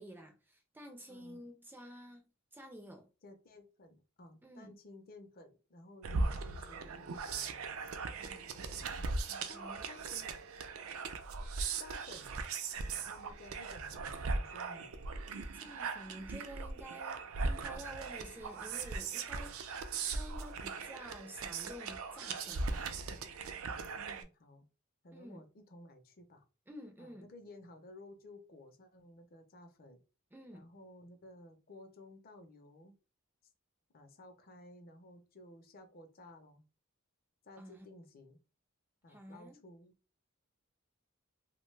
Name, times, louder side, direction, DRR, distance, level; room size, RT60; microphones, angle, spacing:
voice 1, 0.0-3.1 4.4-4.7 8.2-8.6 9.3-9.9 15.5-23.0 25.1-25.4 26.7-27.3 30.3-30.7 37.6-37.9 39.1-39.6, equal, 10° right, 0.3 m, -51 dB
voice 2, 1.1-1.5 3.2-7.7 8.9-9.2 9.5-10.3 11.8-12.4 12.8-15.1 24.0-24.6 25.0-26.4 27.0-30.0 30.5-32.9 33.9-36.6 37.4-38.4 39.0-39.9, left 1 dB, 45° left, 0.5 m, -55 dB
sound 1, 6.0-24.2, right 4 dB, 80° right, 0.4 m, -39 dB
2.6 x 2.1 x 3.1 m
head